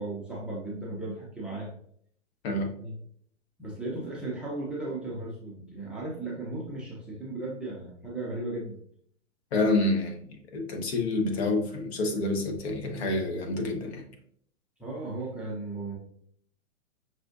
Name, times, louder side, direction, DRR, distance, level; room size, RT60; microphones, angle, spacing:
voice 1, 0.0-1.7 2.5-2.9 3.6-8.8 14.8-16.0, right 2 dB, 5° right, -4 dB, 0.5 m, -36 dB
voice 2, 9.5-14.0, left 2 dB, 55° left, 3 dB, 1.0 m, -28 dB
5.9 x 2.4 x 2.5 m, 0.64 s
hypercardioid pair, 125°, 37 cm